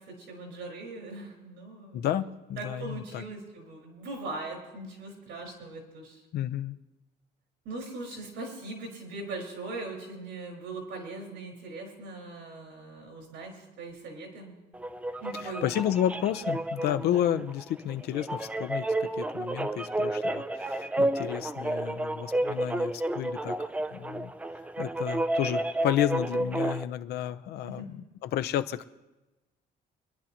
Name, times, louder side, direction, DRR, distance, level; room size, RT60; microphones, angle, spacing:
voice 1, 0.1-2.0 2.6-6.2 7.6-14.5 15.2-15.7 27.6-27.9, right 2 dB, 80° right, 1 dB, 4.8 m, -40 dB
voice 2, 1.9-3.2 6.3-6.8 15.4-23.6 23.9-24.3 24.8-28.9, left 11 dB, 65° left, 11 dB, 0.7 m, -31 dB
sound 1, 14.7-26.8, right 1 dB, 10° right, 0.4 m, -31 dB
25.0 x 11.0 x 3.0 m, 1.1 s
cardioid pair, 155°, 18 cm